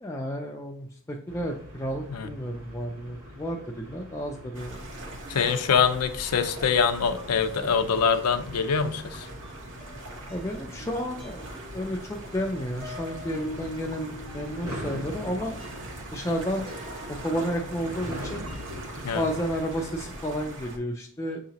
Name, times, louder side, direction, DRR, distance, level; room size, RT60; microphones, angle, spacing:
voice 1, 0.0-4.8 10.3-11.5 11.7-15.6 16.1-16.7 17.2-18.5 19.1-21.4, equal, 15° left, 1 dB, 0.3 m, -31 dB
sound 1, 1.3-20.1, equal, 75° right, 1.3 m, -44 dB
sound 2, 4.5-20.8, right 1 dB, 55° right, 0.9 m, -41 dB
voice 2, 5.3-9.3 19.0-19.2, left 6 dB, 90° left, 8 dB, 0.5 m, -24 dB
sound 3, 6.2-6.8 7.2-7.3 8.1-18.2 18.5-18.9 19.5-20.4, equal, 20° right, 0.6 m, -46 dB
6.5 x 2.8 x 2.8 m, 0.62 s
head